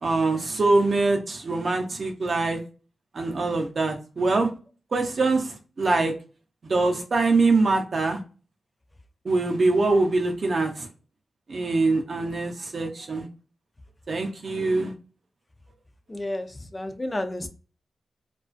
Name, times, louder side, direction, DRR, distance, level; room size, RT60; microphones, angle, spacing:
voice 1, 0.0-2.6 3.1-4.5 4.9-6.1 6.7-8.2 9.2-10.9 11.5-13.3 14.1-14.9, right 3 dB, 50° right, 0.5 m, -23 dB
voice 2, 16.1-17.5, left 1 dB, 20° left, 0.3 m, -31 dB
2.3 x 2.3 x 2.4 m
wide cardioid pair, 110°, 0 cm